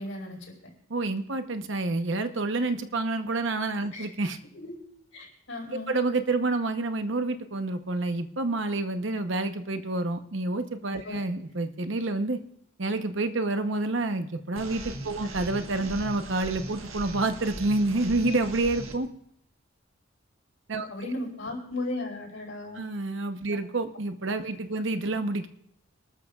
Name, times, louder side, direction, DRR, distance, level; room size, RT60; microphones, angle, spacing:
voice 1, 0.0-0.7 3.9-4.1 4.5-4.7 5.1-6.0 11.0-11.2 20.9-22.9, left 2 dB, 70° left, 0 dB, 4.7 m, -36 dB
voice 2, 0.9-4.4 5.7-12.4 12.8-19.1 20.7-20.9 22.7-25.5, right 2 dB, 60° right, 8 dB, 0.9 m, -28 dB
sound 1, 14.6-18.9, right 2 dB, 80° right, 1.6 m, -39 dB
26.0 x 13.0 x 2.4 m, 0.71 s
head